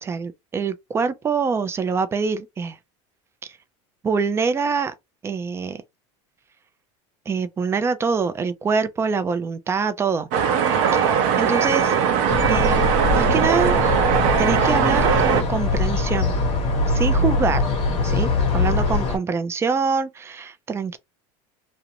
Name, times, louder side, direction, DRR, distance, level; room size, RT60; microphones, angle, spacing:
voice 1, 0.0-2.8 4.0-4.9 5.2-5.8 7.3-10.3 10.9-11.0 11.4-11.9 12.5-13.8 14.4-16.3 16.9-17.6 18.0-21.0, right 5 dB, 15° right, 0.3 m, -25 dB
sound 1, 10.3-15.4, right 7 dB, 60° right, 0.6 m, -20 dB
sound 2, 12.3-19.2, left 3 dB, 35° left, 1.0 m, -22 dB
2.5 x 2.0 x 2.7 m
supercardioid pair, 135°, 16 cm